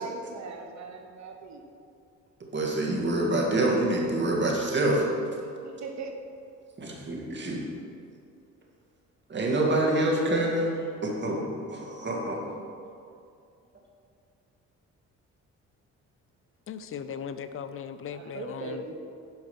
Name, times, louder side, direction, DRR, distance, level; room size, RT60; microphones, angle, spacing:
voice 1, 0.0-1.6 5.6-6.1 18.1-18.9, right 4 dB, 65° right, 3 dB, 1.2 m, -39 dB
voice 2, 2.5-5.0 6.8-7.7 9.3-12.4, right 1 dB, 35° right, -1 dB, 2.1 m, -26 dB
voice 3, 16.7-18.8, left 7 dB, 45° left, 10 dB, 0.6 m, -38 dB
10.5 x 5.5 x 5.5 m, 2.4 s
cardioid pair, 90°, 30 cm